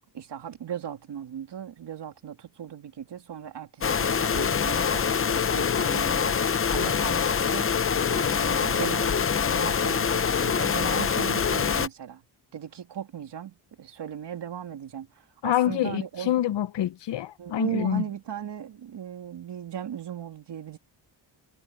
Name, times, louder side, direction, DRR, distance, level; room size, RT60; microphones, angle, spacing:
voice 1, 0.1-7.7 8.1-12.2 12.5-15.1 15.4-16.3 17.4-20.8, right 9 dB, 70° right, 2.6 m, -37 dB
sound 1, 3.8-11.9, left 6 dB, 30° left, 0.7 m, -25 dB
voice 2, 15.4-18.0, left 12 dB, 75° left, 0.7 m, -26 dB
wide cardioid pair, 115°, 43 cm